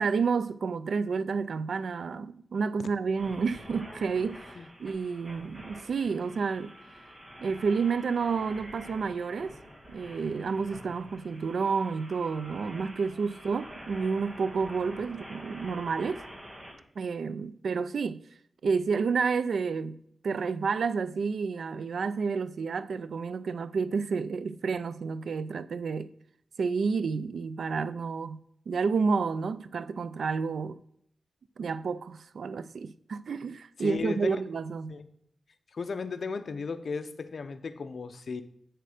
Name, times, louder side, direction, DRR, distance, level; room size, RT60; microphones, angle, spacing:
voice 1, 0.0-4.5 4.8-6.7 7.4-9.6 9.9-16.2 17.0-18.2 18.6-26.1 26.6-28.4 28.7-30.8 31.6-35.0, right 5 dB, 85° right, 0.4 m, -30 dB
sound 1, 3.1-16.7, equal, 25° right, 2.5 m, -47 dB
voice 2, 33.8-34.4 34.9-35.1 35.7-38.4, left 4 dB, 65° left, 0.6 m, -35 dB
7.6 x 6.6 x 4.9 m
wide cardioid pair, 105°, 0 cm